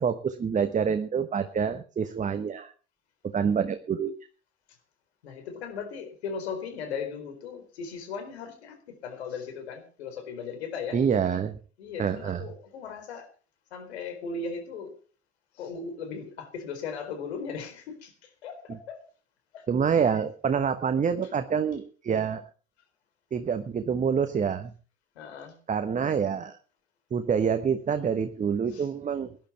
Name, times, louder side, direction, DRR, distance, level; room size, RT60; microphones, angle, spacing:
voice 1, 0.0-2.7 3.2-4.1 10.9-11.6 12.0-12.4 19.7-22.4 23.3-24.7 25.7-26.6 27.1-29.4, right 7 dB, 20° right, 9 dB, 1.1 m, -27 dB
voice 2, 5.2-8.8 9.0-11.0 11.8-13.3 13.7-14.9 15.6-18.1 18.4-19.0 19.5-19.6 19.9-20.1 21.2-21.3 25.2-25.5 28.7-28.9, left 5 dB, 70° left, 7 dB, 4.3 m, -37 dB
18.5 x 11.0 x 4.4 m, 0.38 s
figure-of-eight pair, 75°, 34 cm